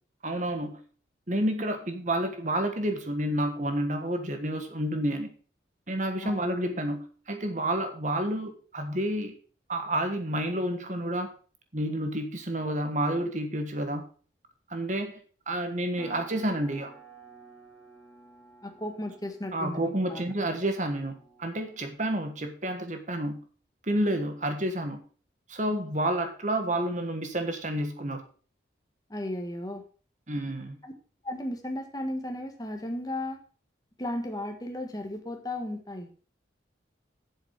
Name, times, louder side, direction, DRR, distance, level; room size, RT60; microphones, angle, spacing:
voice 1, 0.2-0.8 1.3-5.3 5.9-9.3 9.7-11.3 11.7-14.1 14.7-15.2 15.5-16.9 19.5-23.4 23.8-25.0 25.5-28.2 30.3-30.8, right 1 dB, 40° right, 6 dB, 1.5 m, -30 dB
sound 1, 16.0-22.2, right 2 dB, 5° left, 2.3 m, -53 dB
voice 2, 18.6-20.2 29.1-29.8 30.8-30.9 31.2-33.4 34.0-36.1, left 1 dB, 20° left, 4 dB, 1.5 m, -35 dB
7.9 x 7.3 x 5.8 m, 0.40 s
head